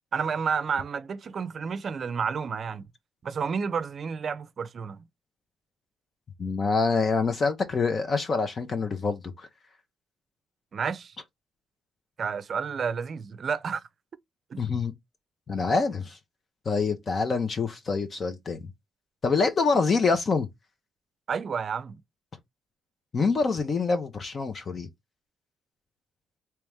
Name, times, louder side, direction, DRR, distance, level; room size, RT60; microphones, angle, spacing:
voice 1, 0.1-2.8 3.2-5.0 10.7-11.2 12.2-13.8 14.5-14.6 21.3-22.0, right 6 dB, 50° right, 0.5 m, -30 dB
voice 2, 6.4-9.5 14.6-14.9 15.5-16.2 16.7-18.6 19.2-20.5 23.1-24.9, left 4 dB, 40° left, 0.7 m, -26 dB
3.1 x 2.9 x 3.5 m
cardioid pair, 90°, 0 cm